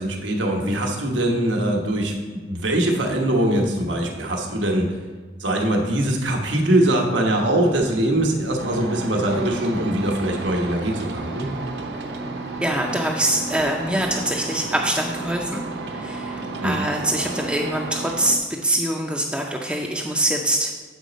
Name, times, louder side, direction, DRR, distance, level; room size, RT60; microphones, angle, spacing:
voice 1, 0.0-4.9 5.4-11.5 16.6-16.7, right 1 dB, 90° right, 1 dB, 1.2 m, -22 dB
sound 1, 8.6-18.4, right 3 dB, 65° right, 0.8 m, -32 dB
voice 2, 12.6-15.7 15.9-20.7, right 1 dB, 5° right, -1 dB, 0.4 m, -24 dB
8.2 x 4.1 x 5.1 m, 1.4 s
head